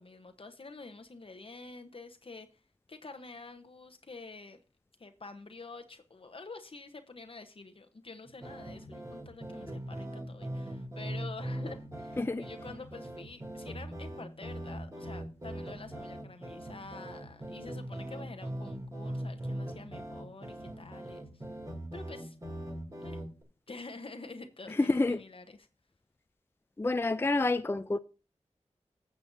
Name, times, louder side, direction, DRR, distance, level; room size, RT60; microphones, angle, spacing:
voice 1, 0.0-2.5 2.9-4.6 5.0-21.4 21.9-22.4 23.0-23.2 23.7-25.7, left 3 dB, 50° left, 0.9 m, -48 dB
sound 1, 8.3-23.4, right 1 dB, 25° right, 2.6 m, -41 dB
voice 2, 24.8-25.2 26.8-28.0, left 2 dB, 20° left, 0.4 m, -28 dB
14.5 x 7.6 x 2.6 m
cardioid pair, 55°, 12 cm